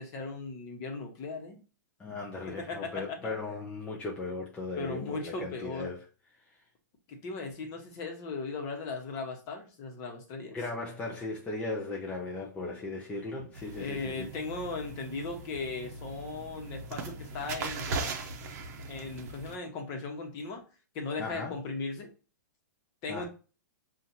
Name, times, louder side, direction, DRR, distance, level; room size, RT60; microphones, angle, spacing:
voice 1, 0.0-1.6 2.6-3.2 4.8-5.9 7.1-10.6 13.8-17.8 18.9-20.6 20.9-22.1 23.0-23.3, left 3 dB, 35° left, 1.1 m, -37 dB
voice 2, 2.0-6.0 10.5-14.3 21.2-21.5 23.1-23.3, left 3 dB, 10° left, 0.5 m, -37 dB
sound 1, 13.5-19.5, right 3 dB, 50° right, 0.8 m, -39 dB
5.5 x 2.5 x 2.7 m
hypercardioid pair, 140°, 10 cm